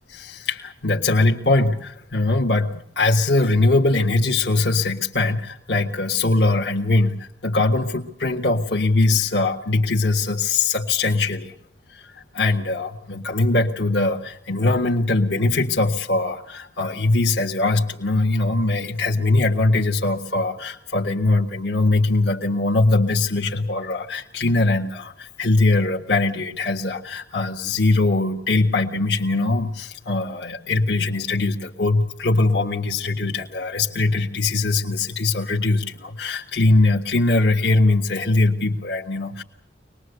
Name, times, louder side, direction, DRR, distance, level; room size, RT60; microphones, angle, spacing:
voice 1, 0.1-11.5 11.9-39.4, left 2 dB, 65° left, 0 dB, 1.5 m, -21 dB
24.0 x 20.5 x 8.1 m, 0.67 s
head